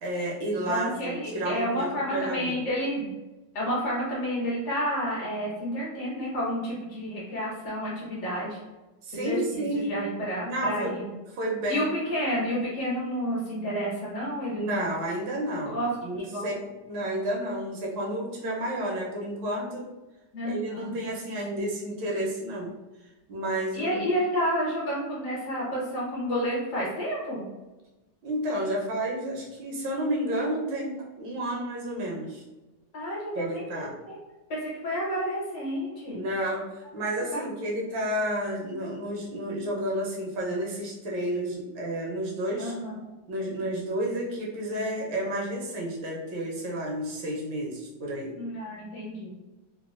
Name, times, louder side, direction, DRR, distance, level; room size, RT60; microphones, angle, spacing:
voice 1, 0.0-2.6 9.0-9.9 10.4-11.0 11.3-11.9 14.5-16.5 16.9-19.8 20.4-22.7 23.3-24.0 28.2-32.4 33.3-33.9 36.1-36.6 36.9-42.7 43.3-48.3, right 1 dB, 80° right, -3 dB, 1.5 m, -31 dB
voice 2, 0.6-3.1 3.5-8.6 9.1-11.0 11.7-14.9 15.6-15.9 16.2-16.5 17.0-17.1 20.3-20.9 23.7-27.5 32.9-34.2 34.5-36.2 37.3-37.4 42.6-43.0 48.3-49.3, equal, 65° left, -5 dB, 1.6 m, -30 dB
3.9 x 2.2 x 2.4 m, 1.1 s
omnidirectional pair, 2.0 m